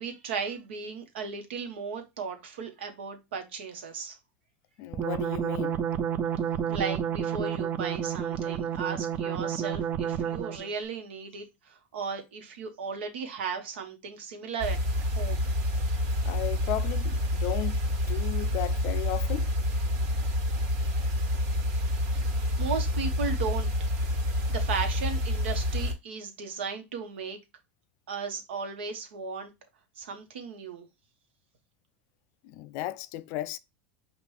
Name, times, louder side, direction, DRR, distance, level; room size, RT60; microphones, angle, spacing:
voice 1, 0.0-4.2 6.7-15.5 21.9-22.0 22.6-23.7 24.5-27.4 28.1-29.5 30.0-30.8, right 5 dB, 85° right, 1.1 m, -36 dB
voice 2, 4.8-5.8 16.2-17.8 18.1-19.5 32.4-33.6, left 14 dB, 60° left, 0.4 m, -35 dB
sound 1, 4.9-10.7, right 8 dB, 30° right, 0.4 m, -30 dB
sound 2, 14.6-25.9, left 1 dB, 55° right, 1.7 m, -28 dB
5.3 x 2.5 x 3.2 m
supercardioid pair, 115°, 6 cm